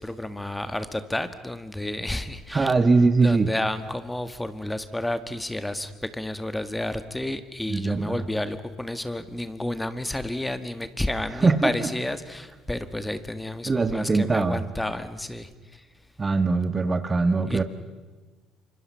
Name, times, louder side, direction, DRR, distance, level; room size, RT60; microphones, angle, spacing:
voice 1, 0.0-2.7 3.2-15.8 17.5-17.6, left 1 dB, 10° left, 10 dB, 1.7 m, -31 dB
voice 2, 2.5-3.5 7.7-8.2 11.4-11.7 13.7-14.6 16.2-17.6, right 3 dB, 30° right, 10 dB, 1.6 m, -21 dB
28.0 x 25.5 x 5.8 m, 1.3 s
hypercardioid pair, 60°, 0 cm